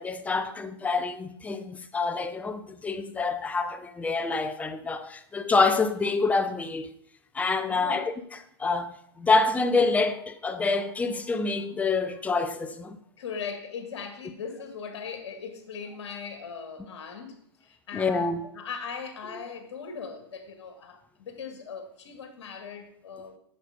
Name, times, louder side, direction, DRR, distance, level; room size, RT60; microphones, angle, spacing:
voice 1, 0.0-6.9 7.3-8.1 8.6-13.0 17.9-18.4 19.3-19.4, left 3 dB, 10° left, 0.6 m, -27 dB
voice 2, 7.7-8.0 13.2-23.4, left 6 dB, 75° left, 2.0 m, -39 dB
8.0 x 6.6 x 5.1 m
hypercardioid pair, 115°, 14 cm